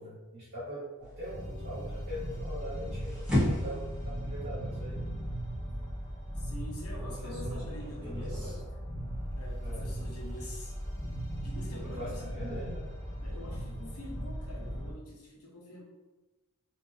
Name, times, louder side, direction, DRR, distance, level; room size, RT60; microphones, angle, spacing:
voice 1, 0.0-3.2 3.6-5.1 7.0-7.6 8.0-8.6 9.6-9.9 11.8-12.9, equal, 50° right, -10 dB, 1.3 m, -42 dB
sound 1, 1.0-8.6, left 1 dB, 5° right, 1.5 m, -37 dB
sound 2, 1.2-14.9, equal, 15° left, 0.8 m, -38 dB
voice 2, 6.3-8.5 9.3-10.8 11.4-12.3 13.2-15.8, equal, 85° left, -2 dB, 1.1 m, -46 dB
3.4 x 2.8 x 3.5 m, 1.2 s
head